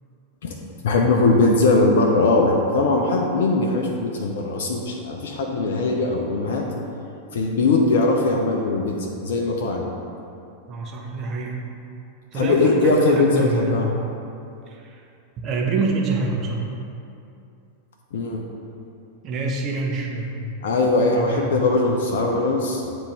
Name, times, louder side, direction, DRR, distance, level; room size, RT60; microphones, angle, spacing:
voice 1, 0.8-6.6 7.3-9.9 12.4-13.9 18.1-18.4 20.6-22.8, left 3 dB, 60° left, 1 dB, 0.5 m, -20 dB
voice 2, 10.7-11.6 12.3-13.8 14.7-15.0 15.4-16.7 19.2-20.5 21.1-21.6, right 3 dB, 30° right, -1 dB, 0.8 m, -26 dB
8.7 x 3.4 x 3.2 m, 2.6 s
figure-of-eight pair, 90°, 0 cm